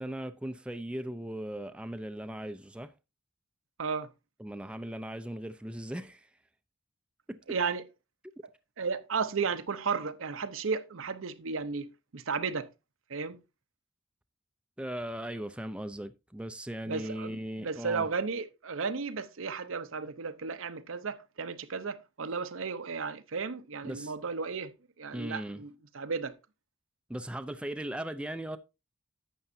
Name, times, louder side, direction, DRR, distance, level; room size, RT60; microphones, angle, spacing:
voice 1, 0.0-2.9 4.4-6.3 7.3-7.6 14.8-18.1 23.8-24.1 25.1-25.6 27.1-28.6, right 1 dB, 5° right, 0.4 m, -38 dB
voice 2, 3.8-4.1 7.5-7.8 8.8-12.7 13.1-13.4 16.9-25.7 25.9-26.3, right 5 dB, 75° right, 0.8 m, -34 dB
11.0 x 7.8 x 2.7 m
head